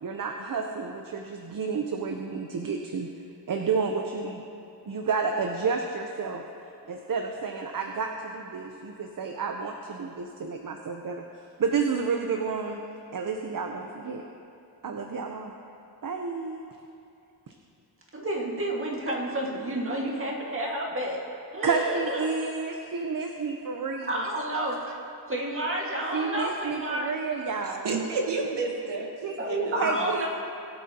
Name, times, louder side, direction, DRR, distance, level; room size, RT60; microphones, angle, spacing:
voice 1, 0.0-3.1 3.5-4.4 4.9-6.4 6.9-11.2 11.6-12.8 13.1-14.2 14.8-15.5 16.0-16.6 21.6-24.2 26.1-27.9 29.2-29.4 29.8-30.3, right 5 dB, 50° right, 3 dB, 0.8 m, -30 dB
voice 2, 18.1-21.2 21.5-22.3 24.1-24.9 25.3-27.1 29.4-30.3, right 1 dB, 30° right, -2 dB, 1.9 m, -30 dB
voice 3, 27.6-30.3, right 3 dB, 70° right, 1 dB, 1.4 m, -31 dB
20.0 x 8.6 x 2.9 m, 2.7 s
wide cardioid pair, 100°, 42 cm